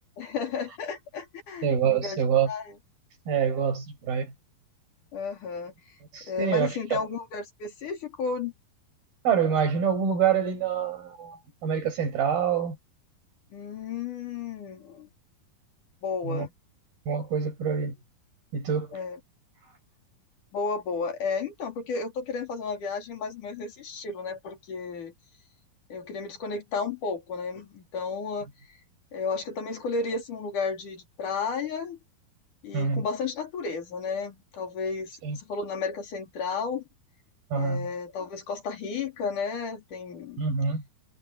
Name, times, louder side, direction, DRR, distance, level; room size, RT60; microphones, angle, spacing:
voice 1, 0.2-2.2 2.5-2.6 5.1-5.7 6.3-8.5 13.5-15.1 16.0-16.5 18.9-19.2 20.5-25.1 25.9-28.5 29.1-32.0 32.6-36.8 37.5-40.4, left 5 dB, 60° left, 5.0 m, -33 dB
voice 2, 1.6-2.5 3.3-4.3 6.1-7.0 9.2-12.8 16.2-16.5 17.1-18.0 18.5-18.9 32.7-33.1 35.2-35.4 37.5-37.9 40.4-40.8, right 7 dB, 85° right, 8.2 m, -26 dB
omnidirectional pair, 4.2 m